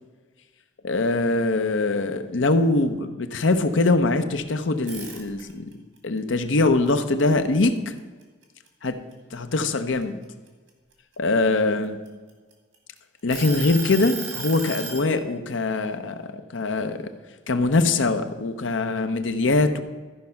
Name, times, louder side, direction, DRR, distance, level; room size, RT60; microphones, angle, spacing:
voice 1, 0.8-5.7 6.0-7.9 8.8-9.0 9.3-10.2 11.2-12.0 13.2-17.1 17.5-19.8, left 3 dB, 90° left, 9 dB, 0.8 m, -23 dB
sound 1, 4.8-5.7 6.2-8.0 8.4-8.7 9.1-10.9 11.6-12.8 13.3-15.1, right 5 dB, 90° right, 2.2 m, -35 dB
13.0 x 5.3 x 5.7 m, 1.4 s
head